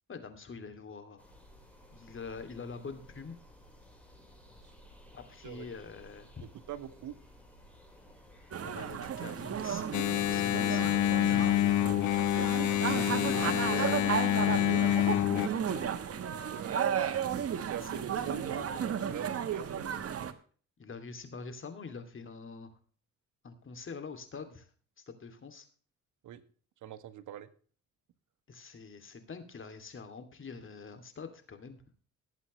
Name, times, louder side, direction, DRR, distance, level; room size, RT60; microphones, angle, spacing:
voice 1, 0.1-1.3 1.9-3.4 5.1-6.4 8.6-11.7 12.9-15.9 17.7-18.3 18.7-19.3 20.8-22.7 23.4-24.7 25.0-25.7 28.5-31.8, left 4 dB, 40° left, 8 dB, 2.6 m, -45 dB
sound 1, 1.2-20.2, equal, 5° left, 4.5 m, -56 dB
voice 2, 6.7-7.1 16.5-16.8 17.7-18.7 19.1-19.8 26.2-26.4 26.8-27.5, right 11 dB, 75° right, 12 dB, 1.3 m, -42 dB
sound 2, 8.5-20.3, right 8 dB, 50° right, 1.4 m, -34 dB
Engine, 9.9-15.5, left 13 dB, 70° left, 0.6 m, -27 dB
19.0 x 8.1 x 3.2 m, 0.42 s
cardioid pair, 90°, 30 cm